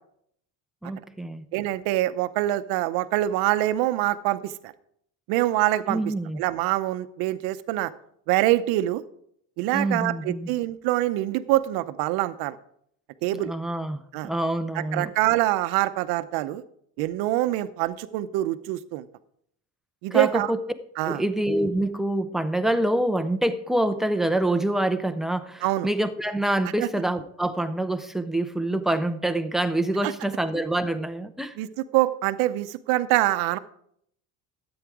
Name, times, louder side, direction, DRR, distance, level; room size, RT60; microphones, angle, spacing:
voice 1, 0.8-1.5 5.9-6.4 9.7-10.5 13.4-15.1 20.1-20.6 21.1-31.5, right 1 dB, ahead, 0.5 m, -26 dB
voice 2, 1.5-4.7 5.3-6.0 6.4-7.9 8.3-9.0 9.6-12.6 13.2-13.5 14.1-14.3 14.7-16.6 17.0-19.1 20.0-20.5 21.0-21.2 25.6-25.9 26.8-26.9 30.0-30.1 31.6-31.7 31.9-33.6, right 15 dB, 85° right, 0.7 m, -25 dB
13.0 x 8.9 x 4.7 m
cardioid pair, 155°, 36 cm